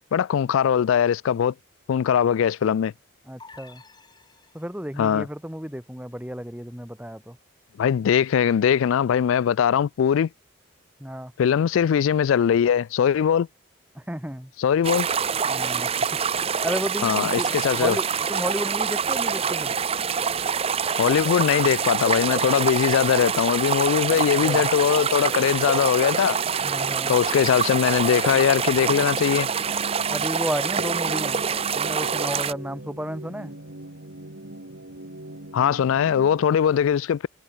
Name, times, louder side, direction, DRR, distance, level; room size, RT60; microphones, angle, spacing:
voice 1, 0.1-1.5 1.9-2.9 5.0-5.3 7.8-10.3 11.4-13.5 14.6-15.1 17.0-18.0 21.0-26.4 27.1-29.5 35.5-37.3, left 8 dB, 75° left, 0.3 m, -21 dB
voice 2, 3.3-3.8 4.5-7.4 11.0-11.3 14.0-14.5 15.5-15.9 16.6-19.7 24.1-24.7 26.6-27.1 30.1-33.5, equal, 5° right, 2.0 m, -32 dB
sound 1, 3.4-5.0, left 4 dB, 20° left, 3.2 m, -50 dB
sound 2, 14.8-32.5, right 6 dB, 30° right, 0.6 m, -25 dB
sound 3, 26.1-36.5, right 1 dB, 60° right, 2.5 m, -41 dB
head